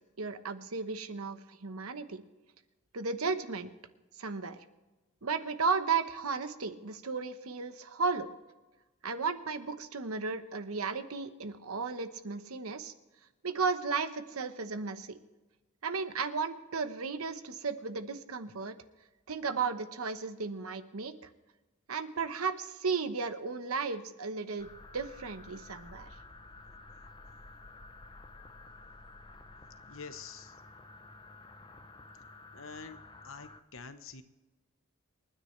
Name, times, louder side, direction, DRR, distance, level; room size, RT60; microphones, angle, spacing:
voice 1, 0.2-2.2 2.9-3.7 4.2-4.6 5.2-8.3 9.0-12.9 13.4-15.2 15.8-18.8 19.3-21.3 21.9-26.1, right 5 dB, 90° right, 10 dB, 1.1 m, -34 dB
sound 1, 24.6-33.6, left 2 dB, 20° left, 0.7 m, -52 dB
voice 2, 29.9-30.6 32.5-33.0 33.2-34.2, left 5 dB, 65° left, 10 dB, 1.1 m, -46 dB
28.0 x 10.0 x 3.3 m, 1.1 s
head